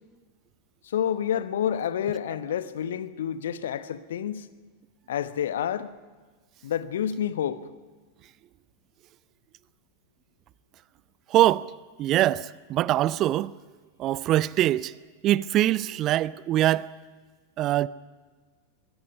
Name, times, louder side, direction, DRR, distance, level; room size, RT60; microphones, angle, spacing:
voice 1, 0.8-4.5 5.1-5.9 6.6-7.6, left 9 dB, 60° left, 1.1 m, -29 dB
voice 2, 11.3-11.7 12.0-13.5 14.0-14.9 15.2-16.9 17.6-17.9, right 14 dB, 35° right, 0.5 m, -23 dB
22.5 x 21.5 x 5.6 m
figure-of-eight pair, 90°, 0 cm